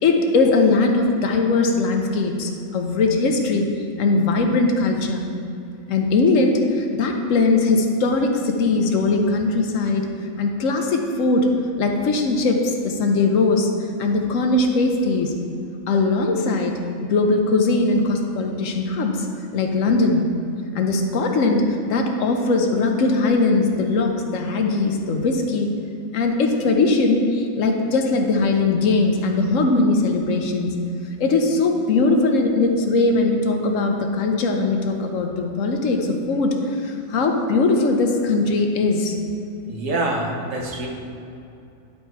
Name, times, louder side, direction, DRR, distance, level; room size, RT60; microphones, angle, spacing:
voice 1, 0.0-3.7 4.0-5.2 5.9-10.1 10.4-11.5 11.8-13.7 14.0-15.3 15.9-19.3 19.5-20.3 20.7-25.7 26.1-30.8 31.2-39.2, left 3 dB, 90° left, 3 dB, 1.2 m, -20 dB
voice 2, 39.6-40.9, right 2 dB, 90° right, -1 dB, 1.4 m, -25 dB
11.0 x 4.3 x 4.6 m, 2.7 s
omnidirectional pair, 1.3 m